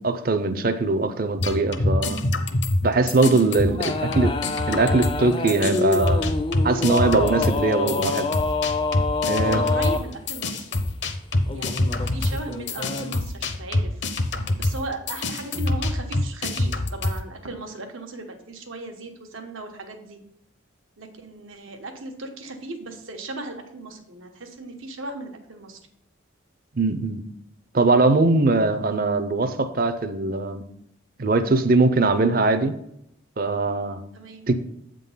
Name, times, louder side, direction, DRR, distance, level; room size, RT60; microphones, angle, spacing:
voice 1, 0.0-2.2 2.8-4.3 4.7-6.3 6.6-8.3 9.3-9.6 26.8-27.2 27.7-30.6 31.2-32.7 33.4-34.0 34.5-34.6, right 3 dB, 45° right, 10 dB, 0.5 m, -21 dB
sound 1, 1.4-5.2 5.5-17.2, left 2 dB, 60° left, 0.7 m, -26 dB
voice 2, 3.2-4.1 9.4-10.7 11.5-14.0 14.6-20.2 21.0-25.8 34.1-34.5, right 3 dB, 90° right, 4 dB, 1.2 m, -37 dB
sound 2, 3.8-10.0 11.5-13.2, left 3 dB, 25° left, 0.4 m, -27 dB
8.2 x 3.8 x 5.5 m, 0.76 s
head